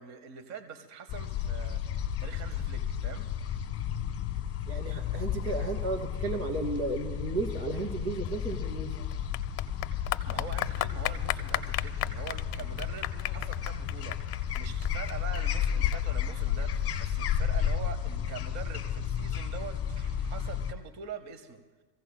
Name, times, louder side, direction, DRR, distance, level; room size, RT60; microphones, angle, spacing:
voice 1, 0.0-3.3 10.0-21.6, right 6 dB, 35° right, 10 dB, 0.9 m, -44 dB
sound 1, 1.1-20.7, left 8 dB, 30° left, 1.2 m, -33 dB
voice 2, 4.7-8.9, right 3 dB, 80° right, 4 dB, 2.5 m, -33 dB
Clapping / Applause, 8.2-17.2, left 14 dB, 45° left, 0.7 m, -35 dB
28.0 x 15.5 x 2.2 m, 1.2 s
supercardioid pair, 115°, 50 cm